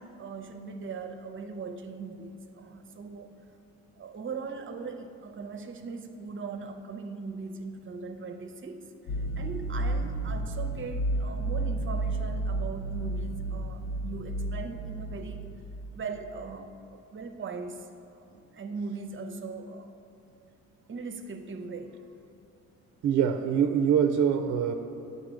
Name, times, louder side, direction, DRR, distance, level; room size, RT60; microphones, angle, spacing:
voice 1, 0.0-3.3 4.0-15.4 15.9-17.9 18.3-19.9 20.9-22.0, right 4 dB, 40° right, 7 dB, 0.7 m, -39 dB
sound 1, 9.1-16.2, right 2 dB, 55° left, 0.5 m, -32 dB
voice 2, 23.0-24.7, right 8 dB, 75° right, 7 dB, 0.5 m, -24 dB
10.0 x 4.1 x 6.2 m, 2.7 s
cardioid pair, 90°, 30 cm